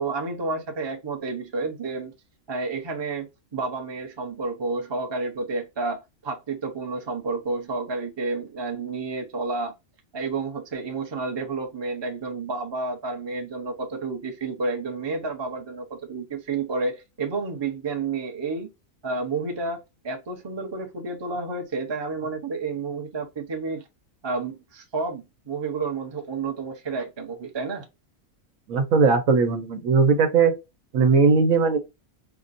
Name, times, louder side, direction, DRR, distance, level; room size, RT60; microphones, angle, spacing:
voice 1, 0.0-2.1 2.5-9.7 10.1-18.7 19.0-19.8 20.0-23.8 24.2-27.9, right 3 dB, 25° right, 0.6 m, -30 dB
voice 2, 28.7-30.5 30.9-31.8, right 4 dB, 80° right, 1.2 m, -19 dB
5.8 x 2.1 x 2.5 m
omnidirectional pair, 1.4 m